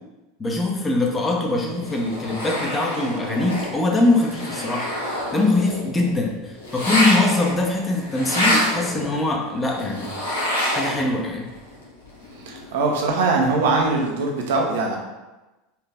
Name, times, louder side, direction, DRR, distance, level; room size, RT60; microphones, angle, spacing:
voice 1, 0.4-10.1 10.7-11.5, left 2 dB, 20° left, 0 dB, 0.9 m, -22 dB
sound 1, 1.6-11.2 11.5-13.9, left 1 dB, 80° left, 1.2 m, -27 dB
voice 2, 12.5-15.0, right 3 dB, 65° right, 1 dB, 0.9 m, -21 dB
4.4 x 3.2 x 3.6 m, 1.1 s
figure-of-eight pair, 80°, 0 cm